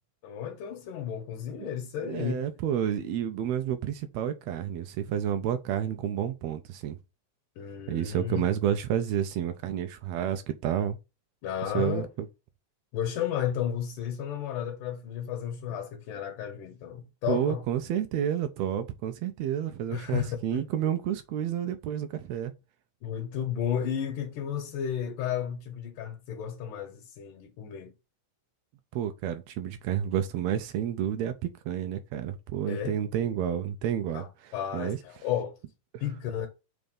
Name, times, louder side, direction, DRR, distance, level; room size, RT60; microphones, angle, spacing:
voice 1, 0.2-2.5 7.6-8.4 11.4-12.1 12.9-17.6 19.9-20.6 23.0-27.9 32.7-33.0 34.1-35.6 36.0-36.5, left 9 dB, 75° left, 2.5 m, -33 dB
voice 2, 2.0-7.0 7.9-11.0 11.7-12.3 17.3-22.5 28.9-34.2 34.7-35.0, right 10 dB, 85° right, 1.6 m, -30 dB
5.2 x 3.5 x 5.2 m
omnidirectional pair, 3.7 m